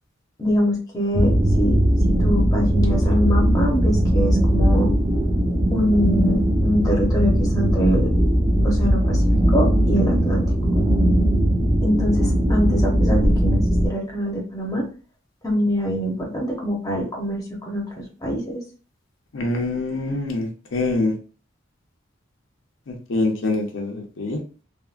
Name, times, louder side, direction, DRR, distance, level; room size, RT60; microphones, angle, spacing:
voice 1, 0.4-1.8 2.1-4.9 5.7-8.1 8.6-10.5 11.8-14.8 15.4-18.6, equal, 20° left, -1 dB, 0.7 m, -24 dB
sound 1, 1.1-13.9, equal, 20° right, 0.6 m, -19 dB
voice 2, 19.3-21.1 22.9-24.4, left 2 dB, 70° left, 2 dB, 0.6 m, -25 dB
3.4 x 2.1 x 2.4 m, 0.37 s
head